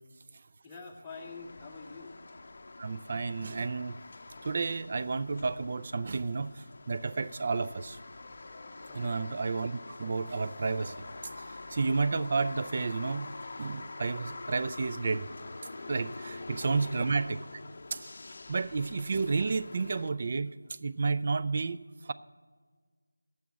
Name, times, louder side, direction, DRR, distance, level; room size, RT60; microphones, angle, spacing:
voice 1, 0.6-2.2 8.9-9.2 16.4-16.5 16.8-17.0, left 4 dB, 10° left, -3 dB, 0.8 m, -46 dB
sound 1, 1.1-20.1, left 3 dB, 45° left, 0.6 m, -45 dB
voice 2, 2.8-4.0 4.4-8.0 8.9-11.1 11.7-13.3 13.6-15.3 15.9-17.5 17.9-18.1 18.5-20.5 20.8-21.8 22.0-22.1, right 4 dB, 35° right, 13 dB, 0.3 m, -31 dB
9.1 x 7.0 x 8.4 m, 1.5 s
figure-of-eight pair, 165°, 0 cm